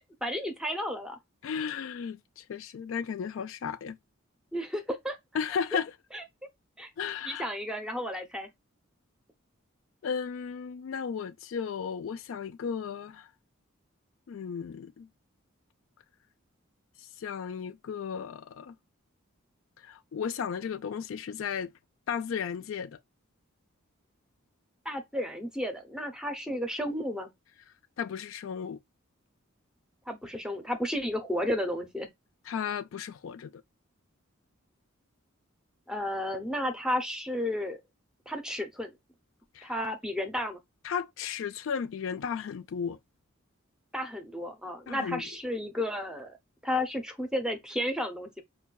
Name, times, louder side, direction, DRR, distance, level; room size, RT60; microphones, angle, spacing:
voice 1, 0.2-1.2 4.5-5.2 5.7-5.8 6.1-6.2 6.8-6.9 7.2-8.5 24.8-27.3 30.1-32.1 35.9-37.8 38.3-38.9 39.6-40.6 43.9-46.4 46.6-48.4, left 1 dB, 5° right, 0.6 m, -32 dB
voice 2, 1.4-4.0 5.3-5.9 7.0-7.5 10.0-13.3 14.3-15.1 17.2-18.8 19.8-21.7 22.1-23.0 28.0-28.8 32.5-33.6 39.5-39.7 40.8-43.0 44.9-45.2, left 7 dB, 65° left, 0.3 m, -34 dB
5.5 x 2.2 x 2.2 m
head